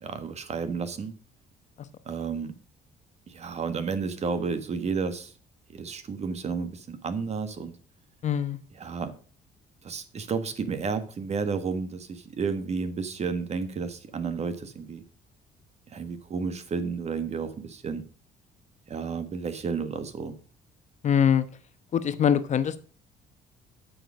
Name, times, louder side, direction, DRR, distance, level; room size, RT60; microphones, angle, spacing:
voice 1, 0.0-1.1 2.0-2.5 3.3-5.3 5.7-7.8 8.8-9.1 9.8-15.0 15.9-18.1 18.9-20.4, right 5 dB, 40° right, 11 dB, 1.5 m, -32 dB
voice 2, 8.2-8.6 21.0-21.5 21.9-22.8, left 8 dB, 45° left, 12 dB, 1.1 m, -23 dB
9.1 x 6.6 x 6.4 m, 0.39 s
cardioid pair, 110°, 17 cm